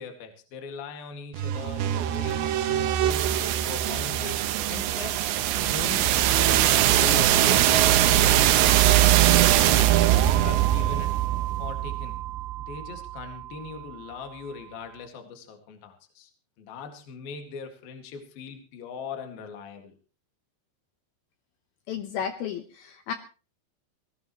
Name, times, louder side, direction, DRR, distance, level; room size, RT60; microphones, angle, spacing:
voice 1, 0.0-4.4 4.7-5.3 5.6-10.1 10.4-11.1 11.6-12.2 12.6-16.3 16.6-19.9, left 4 dB, 55° left, 4 dB, 3.5 m, -40 dB
sound 1, 1.3-13.2, right 13 dB, 80° right, 2.2 m, -22 dB
voice 2, 21.9-23.1, left 8 dB, 75° left, 8 dB, 2.2 m, -33 dB
19.0 x 18.0 x 3.1 m, 0.36 s
omnidirectional pair, 5.7 m